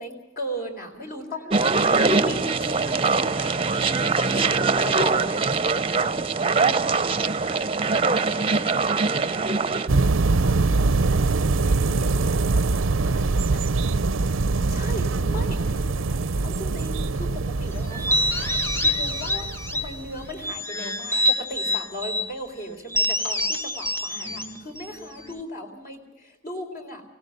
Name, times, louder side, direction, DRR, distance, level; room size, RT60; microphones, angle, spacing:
voice 1, 0.0-1.5 2.1-5.5 14.7-15.6 16.4-17.3 17.6-18.5 18.8-27.0, equal, 50° left, 3 dB, 4.2 m, -36 dB
voice 2, 1.3-2.1 4.5-5.0 6.6-9.5 10.3-14.0 14.3-14.4 14.7-16.2 24.1-24.5, equal, 80° left, 0 dB, 4.0 m, -43 dB
sound 1, 1.5-9.9, right 4 dB, 30° right, 0.8 m, -22 dB
sound 2, 9.9-20.4, right 3 dB, 90° right, 0.7 m, -23 dB
sound 3, 17.9-20.0 20.4-22.3 22.9-25.4, equal, 15° left, 1.4 m, -26 dB
25.0 x 18.0 x 6.7 m, 0.86 s
head